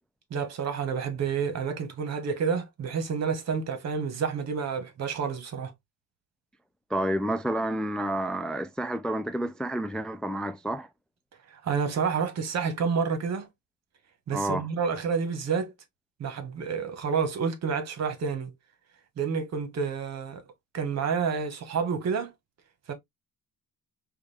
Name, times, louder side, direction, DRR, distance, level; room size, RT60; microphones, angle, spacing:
voice 1, 0.3-5.7 11.5-13.5 14.3-15.7 16.2-18.5 19.2-20.4 20.7-22.3 22.9-23.0, right 6 dB, 60° right, 1.3 m, -29 dB
voice 2, 6.9-10.9 14.3-14.6, right 1 dB, 5° left, 0.3 m, -29 dB
4.9 x 2.4 x 3.2 m
cardioid pair, 90°, 30 cm